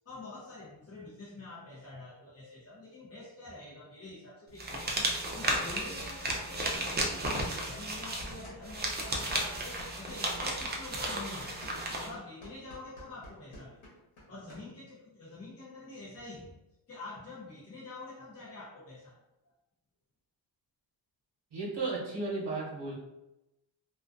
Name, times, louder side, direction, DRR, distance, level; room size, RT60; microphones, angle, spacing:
voice 1, 0.0-5.1 5.3-11.7 12.0-13.8 14.3-16.5 16.9-19.2, left 2 dB, 30° left, -8 dB, 0.7 m, -46 dB
sound 1, 4.6-12.1, right 1 dB, 25° right, 0.4 m, -34 dB
sound 2, 7.4-8.8 9.0-14.6, equal, 90° left, 1.0 m, -50 dB
voice 2, 21.5-22.9, right 3 dB, 60° right, -5 dB, 0.8 m, -34 dB
2.4 x 2.2 x 2.4 m, 0.93 s
wide cardioid pair, 90°, 48 cm